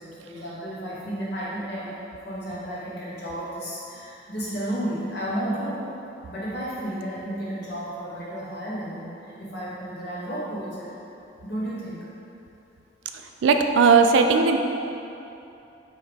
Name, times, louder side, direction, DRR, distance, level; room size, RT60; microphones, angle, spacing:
voice 1, 0.0-1.9 2.2-5.8 6.3-10.8 11.4-12.0, right 1 dB, 60° left, -8 dB, 1.1 m, -32 dB
voice 2, 13.4-14.6, right 5 dB, 80° right, 6 dB, 0.3 m, -17 dB
4.6 x 3.2 x 3.4 m, 2.9 s
head